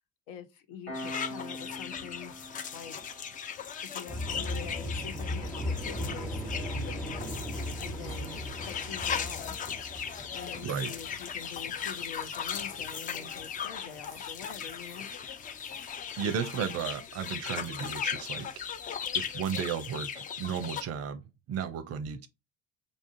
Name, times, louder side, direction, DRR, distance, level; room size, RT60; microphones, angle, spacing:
voice 1, 0.3-2.3 2.7-3.0 3.9-7.5 7.8-9.6 10.3-15.1, left 7 dB, 65° left, 0.7 m, -45 dB
Piano, 0.9-11.9, left 1 dB, 85° left, 2.2 m, -49 dB
sound 1, 0.9-20.8, left 7 dB, 20° left, 0.3 m, -38 dB
sound 2, 4.1-15.9 16.3-16.7 18.6-19.0, equal, ahead, 1.1 m, -39 dB
voice 2, 10.5-10.9 16.2-18.5 19.1-22.3, right 7 dB, 40° right, 0.5 m, -34 dB
5.1 x 2.4 x 2.6 m
hypercardioid pair, 70°, 40 cm